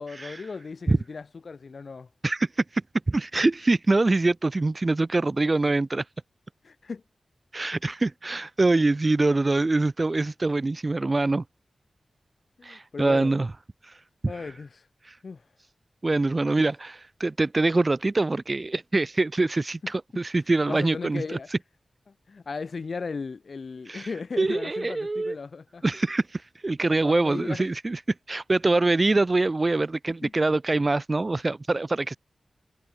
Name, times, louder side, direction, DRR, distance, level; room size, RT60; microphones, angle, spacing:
voice 1, 0.0-2.1 6.6-7.0 12.6-13.3 14.3-14.9 15.2-15.4 19.8-19.9 20.7-21.5 22.1-25.8 27.0-27.7 30.2-30.3, left 4 dB, 50° left, 1.2 m, -36 dB
voice 2, 3.1-6.0 7.5-11.4 12.6-13.5 13.9-14.0 15.1-15.2 16.0-21.4 23.9-24.1 24.4-25.4 25.8-28.0 28.3-32.2, right 2 dB, 25° right, 0.5 m, -24 dB
wide cardioid pair, 145°, 0 cm